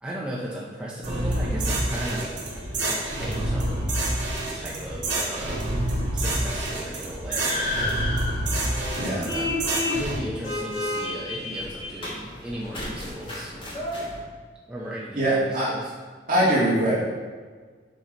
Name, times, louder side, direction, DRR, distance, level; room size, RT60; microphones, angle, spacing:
voice 1, 0.0-2.3 2.8-3.9 4.5-5.6 6.1-8.0 9.2-9.5 9.9-13.5 14.7-15.9, equal, 5° right, -5 dB, 0.7 m, -36 dB
sound 1, 1.0-10.2, right 1 dB, 70° right, 1.9 m, -28 dB
sound 2, 2.0-14.2, left 1 dB, 30° left, 1.8 m, -34 dB
voice 2, 8.9-9.3 15.1-15.7 16.3-16.9, right 1 dB, 45° right, -7 dB, 2.0 m, -22 dB
7.4 x 5.8 x 4.0 m, 1.5 s
head